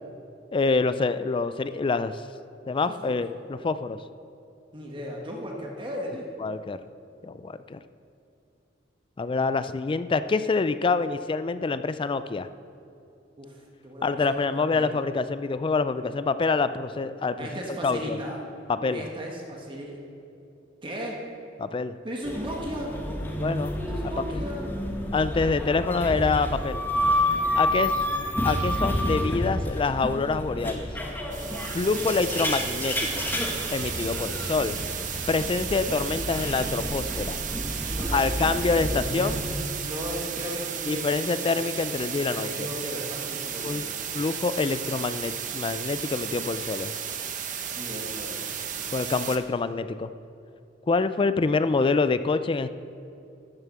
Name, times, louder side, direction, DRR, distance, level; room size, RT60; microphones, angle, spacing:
voice 1, 0.5-2.2 2.7-4.0 6.4-6.8 7.2-7.8 9.2-12.5 14.0-17.5 17.8-18.2 18.7-19.0 21.6-22.0 23.4-23.8 24.3-24.4 25.1-26.8 27.5-30.9 31.7-33.3 33.7-34.8 35.3-37.4 38.1-39.4 40.9-42.7 43.6-43.8 44.1-47.0 48.9-50.1 50.9-52.7, left 4 dB, 25° left, 12 dB, 0.3 m, -26 dB
voice 2, 2.9-3.2 4.7-6.3 13.4-13.6 13.8-15.0 17.4-18.4 18.9-20.0 20.8-21.2 22.0-23.1 23.9-24.7 34.1-34.6 37.9-38.7 39.8-41.6 42.2-43.9 47.7-48.6, equal, 25° right, -1 dB, 1.4 m, -36 dB
sound 1, 22.2-39.6, left 1 dB, 10° left, 1.4 m, -29 dB
sound 2, 31.3-49.4, right 8 dB, 45° right, 0.9 m, -34 dB
12.5 x 7.0 x 7.2 m, 2.8 s
head